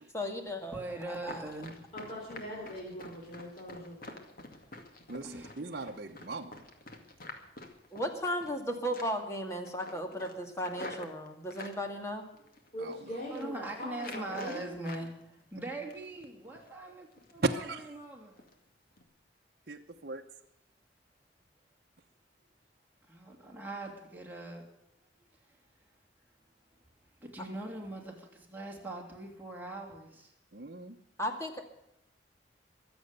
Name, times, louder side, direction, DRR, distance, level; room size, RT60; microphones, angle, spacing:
voice 1, 0.1-0.8 1.0-1.5 7.9-12.3 31.2-31.5, equal, 15° left, 4 dB, 2.3 m, -35 dB
voice 2, 0.7-1.8 5.2-5.8 13.3-17.1 17.3-17.6 18.0-18.5 23.1-24.6 27.2-30.3, right 2 dB, 10° right, 0 dB, 3.1 m, -41 dB
Run, 1.2-8.6 8.9-9.3 9.6-11.8 12.4-12.9 13.2-13.5 14.0-15.1 15.4-16.2 16.6-16.7 17.1-17.5 17.8-17.9 18.4-18.5 18.9-19.0, left 2 dB, 50° left, 2.2 m, -47 dB
voice 3, 1.9-4.2 12.7-14.7, equal, 35° left, -3 dB, 4.1 m, -41 dB
voice 4, 5.1-6.6 12.8-13.0 17.4-17.9 19.7-20.2 30.5-31.0, right 3 dB, 55° right, 1 dB, 1.0 m, -36 dB
23.5 x 8.0 x 6.7 m, 0.81 s
head